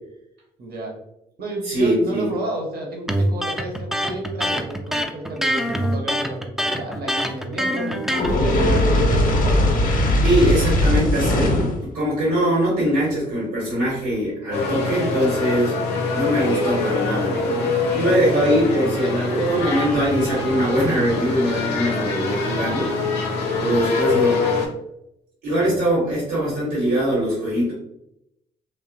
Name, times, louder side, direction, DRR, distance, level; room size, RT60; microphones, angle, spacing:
voice 1, 0.6-1.0 1.4-9.7, right 2 dB, 50° right, 2 dB, 0.8 m, -30 dB
voice 2, 1.6-2.3 10.2-15.7 16.1-22.9 23.6-24.4 25.4-27.7, right 1 dB, 75° right, -7 dB, 1.0 m, -22 dB
Electric guitar, 3.1-8.4, equal, ahead, 0.3 m, -24 dB
Fire, 8.1-11.8, left 1 dB, 45° left, 0.6 m, -19 dB
sound 1, 14.5-24.7, left 4 dB, 90° left, 0.4 m, -24 dB
2.7 x 2.1 x 2.5 m, 0.82 s
hypercardioid pair, 45°, 21 cm